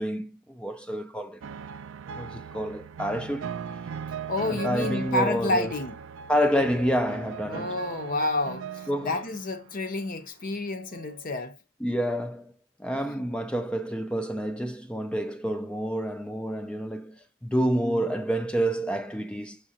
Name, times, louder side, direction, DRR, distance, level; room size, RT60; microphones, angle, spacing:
voice 1, 0.0-1.4 2.1-3.5 4.5-5.7 6.3-7.8 8.9-9.2 11.8-12.5 12.8-19.6, equal, 5° left, 0.4 m, -28 dB
sound 1, 1.4-10.0 10.8-11.3, right 6 dB, 65° right, 0.4 m, -39 dB
voice 2, 4.3-6.0 7.5-11.6 12.9-13.2, left 2 dB, 45° left, 0.7 m, -29 dB
6.4 x 5.9 x 2.8 m
head